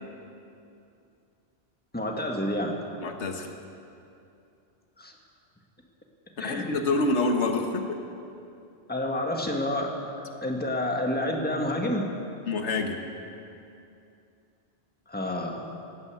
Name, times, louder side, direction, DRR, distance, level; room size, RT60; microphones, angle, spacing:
voice 1, 1.9-2.8 5.0-5.1 6.4-6.8 8.9-9.9 10.2-12.1 15.1-15.7, left 1 dB, 10° left, 1 dB, 1.6 m, -29 dB
voice 2, 3.0-3.5 6.4-8.0 12.5-13.0, left 3 dB, 85° left, 4 dB, 1.5 m, -27 dB
17.5 x 9.6 x 8.4 m, 2.6 s
omnidirectional pair, 1.1 m